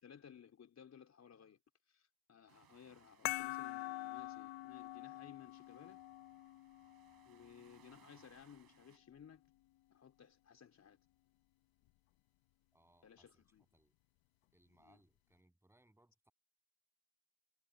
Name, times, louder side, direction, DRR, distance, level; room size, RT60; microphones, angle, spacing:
voice 1, 0.0-1.6 1.9-6.0 7.3-9.4 9.9-11.0 13.0-13.6 14.7-15.0, left 8 dB, 35° left, 4.5 m, -59 dB
sound 1, 2.5-9.0, right 11 dB, 50° right, 7.1 m, -70 dB
sound 2, 3.3-8.3, left 17 dB, 80° left, 1.1 m, -46 dB
voice 2, 12.7-13.4 13.7-13.9 14.5-16.3, right 1 dB, 5° right, 8.0 m, -71 dB
cardioid pair, 140°, 45 cm